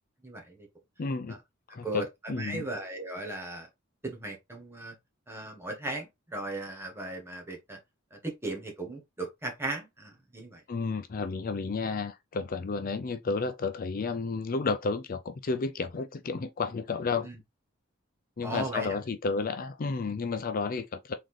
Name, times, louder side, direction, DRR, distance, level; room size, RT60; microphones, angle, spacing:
voice 1, 0.2-0.7 1.8-3.7 4.0-5.0 5.3-7.8 8.1-10.6 17.2-17.4 18.4-19.0, right 2 dB, 15° right, 1.5 m, -37 dB
voice 2, 1.0-1.4 1.7-2.6 10.7-17.3 18.4-21.1, left 4 dB, 45° left, 0.5 m, -32 dB
4.0 x 3.7 x 3.2 m
head